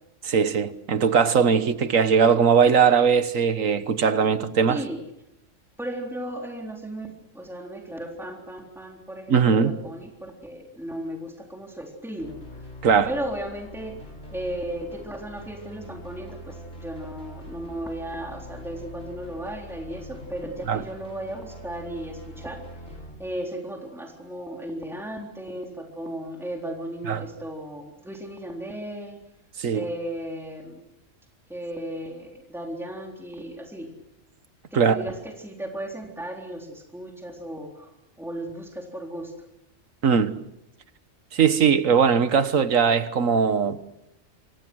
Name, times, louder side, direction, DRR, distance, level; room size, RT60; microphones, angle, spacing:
voice 1, 0.2-4.8 9.3-9.7 12.8-13.1 20.7-20.8 27.1-27.2 29.6-29.8 34.7-35.0 40.0-40.3 41.3-43.8, right 6 dB, 85° right, 1.6 m, -20 dB
voice 2, 4.7-5.0 5.8-12.7 13.1-13.9 14.3-22.6 22.8-29.2 29.7-30.8 31.5-33.9 34.7-39.3, right 1 dB, ahead, 3.8 m, -35 dB
sound 1, 12.2-23.1, left 1 dB, 60° left, 7.2 m, -43 dB
28.5 x 24.5 x 6.3 m
omnidirectional pair, 1.3 m